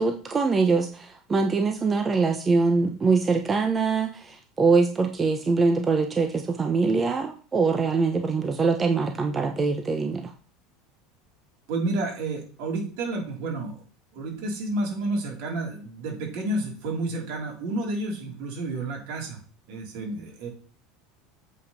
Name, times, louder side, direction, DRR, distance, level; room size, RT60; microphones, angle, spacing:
voice 1, 0.0-10.3, right 4 dB, 20° right, 5 dB, 1.0 m, -23 dB
voice 2, 11.7-13.8 14.1-19.4 19.7-20.5, right 2 dB, 65° right, 0 dB, 4.3 m, -30 dB
8.3 x 5.3 x 5.9 m, 0.40 s
supercardioid pair, 115°, 0 cm